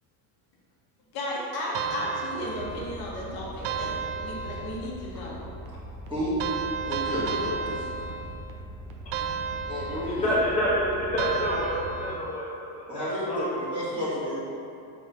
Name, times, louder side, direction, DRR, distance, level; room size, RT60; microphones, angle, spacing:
voice 1, 1.1-5.4, left 1 dB, 50° left, -4 dB, 1.4 m, -34 dB
sound 1, 1.7-3.1 3.6-5.0 6.4-8.6 9.1-10.4 11.2-12.5, right 5 dB, 85° right, 0.6 m, -33 dB
sound 2, 2.5-11.9, right 1 dB, 50° right, 0.8 m, -42 dB
voice 2, 6.8-7.9 9.7-10.3 12.9-14.4, left 1 dB, 10° right, -10 dB, 1.5 m, -31 dB
voice 3, 10.1-11.7 12.0-12.5 12.7-13.4, equal, 15° left, -9 dB, 0.5 m, -27 dB
5.0 x 4.1 x 5.2 m, 2.6 s
cardioid pair, 165°, 48 cm